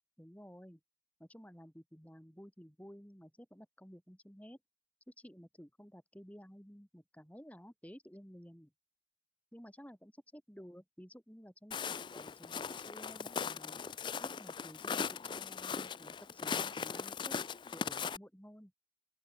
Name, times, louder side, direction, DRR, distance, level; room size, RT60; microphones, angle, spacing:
voice 1, 0.2-0.8 1.2-4.6 5.1-8.7 9.5-13.8 14.2-17.4 17.7-18.7, equal, 10° left, 3.7 m, -54 dB
Walk footsteps, 11.7-18.2, left 6 dB, 25° left, 0.3 m, -39 dB
open air
head